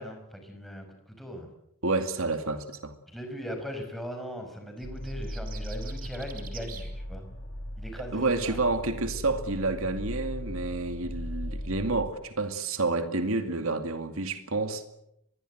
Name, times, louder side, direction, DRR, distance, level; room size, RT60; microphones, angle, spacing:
voice 1, 0.0-1.5 3.1-7.2 7.8-8.6, equal, ahead, 5.4 m, -39 dB
voice 2, 1.8-2.9 8.1-14.8, right 3 dB, 70° right, 2.4 m, -29 dB
sound 1, 4.8-12.1, equal, 75° left, 4.5 m, -38 dB
sound 2, 4.8-6.9, right 8 dB, 40° right, 3.5 m, -46 dB
25.0 x 21.5 x 7.9 m
head